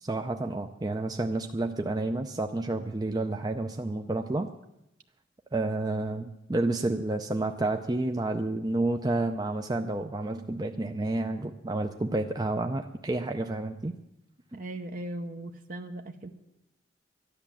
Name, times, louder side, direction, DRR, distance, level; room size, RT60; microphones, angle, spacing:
voice 1, 0.0-4.5 5.5-14.0, right 2 dB, 20° right, 5 dB, 0.5 m, -30 dB
voice 2, 14.5-16.3, right 1 dB, 50° right, 5 dB, 0.8 m, -38 dB
13.0 x 10.5 x 7.3 m, 0.86 s
head